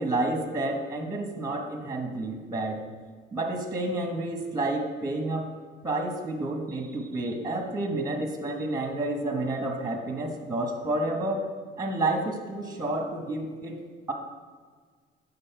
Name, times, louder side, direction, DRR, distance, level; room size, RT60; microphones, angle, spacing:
voice 1, 0.0-2.8 3.3-5.5 5.8-11.4 11.8-13.8, right 2 dB, 20° right, 4 dB, 0.9 m, -30 dB
7.5 x 4.0 x 5.6 m, 1.5 s
cardioid pair, 90°, 20 cm